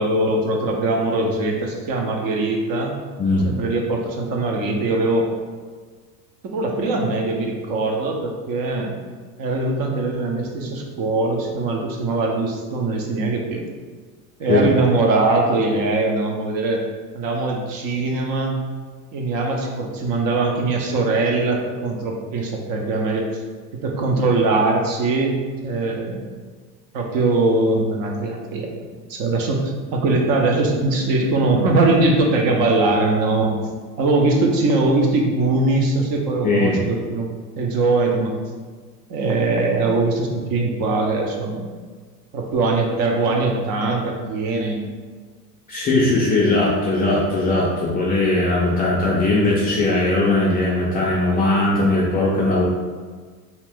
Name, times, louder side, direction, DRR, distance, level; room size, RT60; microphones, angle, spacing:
voice 1, 0.0-2.9 3.4-5.3 6.4-9.0 9.4-13.6 14.4-16.8 17.1-18.6 19.1-23.3 23.7-25.4 25.6-26.2 26.9-28.7 29.1-33.5 34.0-38.3 39.1-41.7 42.3-44.8, right 2 dB, 45° right, 1 dB, 0.7 m, -21 dB
voice 2, 36.4-36.8 45.7-52.6, left 2 dB, 20° left, -5 dB, 0.3 m, -19 dB
2.8 x 2.5 x 3.4 m, 1.5 s
hypercardioid pair, 90°, 48 cm